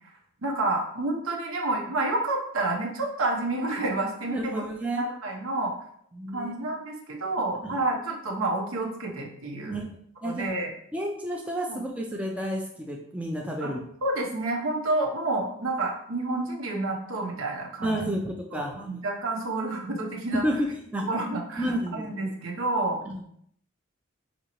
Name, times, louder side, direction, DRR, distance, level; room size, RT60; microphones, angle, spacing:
voice 1, 0.4-4.6 5.0-5.7 6.3-9.8 10.2-10.7 11.7-11.8 13.6-18.1 18.5-20.4 21.0-23.0, right 2 dB, 80° right, 0 dB, 0.8 m, -29 dB
voice 2, 4.3-5.0 6.1-6.5 7.6-7.8 9.7-9.9 10.2-10.4 10.9-13.8 17.8-19.0 20.3-20.7 20.9-21.0 21.6-22.0 23.1-23.2, right 1 dB, 5° right, 0 dB, 0.3 m, -30 dB
5.0 x 2.7 x 2.9 m, 0.67 s
head